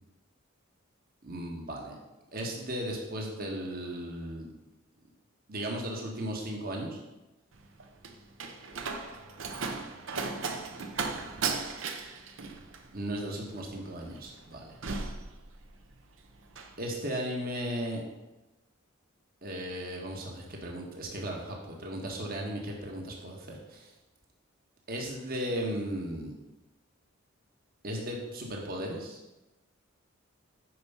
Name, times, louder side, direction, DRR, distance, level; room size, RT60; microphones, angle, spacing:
voice 1, 1.2-1.9 2.3-4.5 5.5-7.0 12.9-14.8 16.8-18.0 19.4-23.9 24.9-26.3 27.8-29.2, equal, 45° right, 0 dB, 1.5 m, -36 dB
Slam, 7.5-16.0 16.3-16.8, right 4 dB, 65° right, 0.8 m, -37 dB
9.5 x 4.7 x 5.6 m, 1.0 s
head